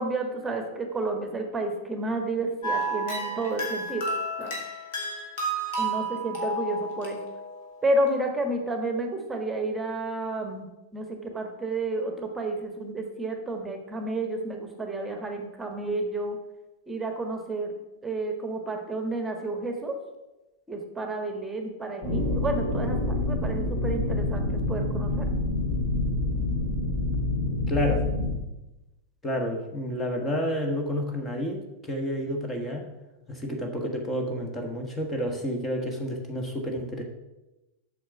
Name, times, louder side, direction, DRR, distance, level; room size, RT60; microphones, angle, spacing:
voice 1, 0.0-4.0 4.4-4.6 5.8-7.2 7.8-10.7 10.9-16.4 16.9-17.7 18.0-20.0 20.7-25.2, right 2 dB, 10° right, 4 dB, 1.5 m, -31 dB
sound 1, 2.6-7.8, right 2 dB, 50° left, 2.7 m, -31 dB
sound 2, 22.0-28.3, left 2 dB, 35° left, 3.4 m, -27 dB
voice 2, 27.7-28.0 29.2-32.8 33.3-37.0, equal, 15° left, 3 dB, 1.5 m, -30 dB
8.3 x 6.5 x 5.9 m, 1.0 s
figure-of-eight pair, 90°, 0 cm